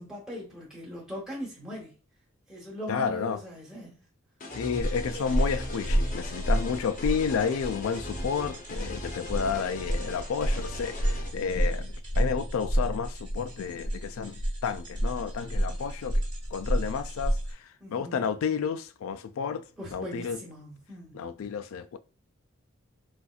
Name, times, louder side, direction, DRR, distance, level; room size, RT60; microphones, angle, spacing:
voice 1, 0.0-1.9 2.5-4.0 17.8-18.3 19.8-21.2, equal, 5° right, 0.9 m, -40 dB
voice 2, 2.9-3.4 4.5-16.2 16.5-19.6 19.9-20.4 21.1-22.0, left 6 dB, 80° left, 0.3 m, -31 dB
sound 1, 4.4-11.3, left 2 dB, 40° left, 0.6 m, -39 dB
sound 2, 4.8-17.5, right 1 dB, 20° right, 1.1 m, -30 dB
4.1 x 2.5 x 2.3 m
head